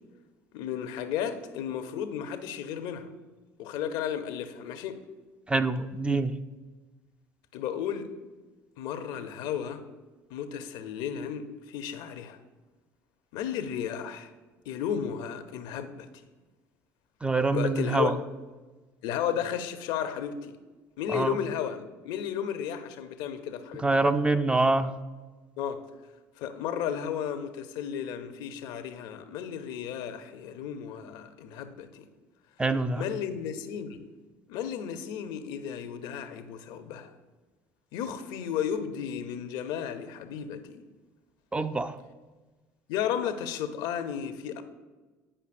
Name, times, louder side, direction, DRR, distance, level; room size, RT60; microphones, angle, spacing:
voice 1, 0.5-3.1 3.6-5.0 7.5-8.1 8.8-9.8 10.3-12.4 13.3-14.3 14.7-16.1 17.5-18.1 19.0-20.5 21.0-24.1 25.6-25.8 26.4-32.1 33.0-34.0 34.5-37.1 37.9-40.8 42.9-44.6, left 9 dB, 70° left, 0.6 m, -33 dB
voice 2, 5.5-6.4 17.2-18.1 21.1-21.4 23.8-24.9 32.6-33.0 41.5-42.0, right 3 dB, 15° right, 0.4 m, -25 dB
9.8 x 5.1 x 2.5 m
hypercardioid pair, 70°, 8 cm